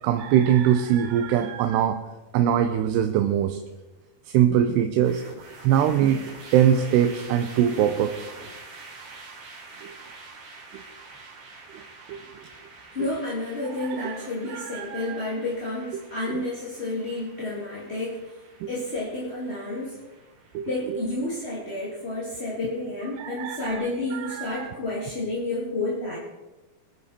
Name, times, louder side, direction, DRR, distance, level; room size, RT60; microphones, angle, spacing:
voice 1, 0.0-2.0 2.3-3.6 4.3-5.2 5.6-8.3 9.8-9.9 10.7-10.8 11.7-11.8 12.1-12.4 13.0-13.1 13.9-15.2 18.6-18.7 20.5-21.0 23.2-24.7, right 9 dB, 80° right, 7 dB, 2.7 m, -23 dB
sound 1, 5.0-24.2, right 3 dB, 55° right, 4.4 m, -47 dB
voice 2, 12.9-18.2 18.7-20.0 20.6-26.2, left 2 dB, 20° left, -6 dB, 1.8 m, -30 dB
21.0 x 11.0 x 4.3 m, 1.1 s
omnidirectional pair, 4.9 m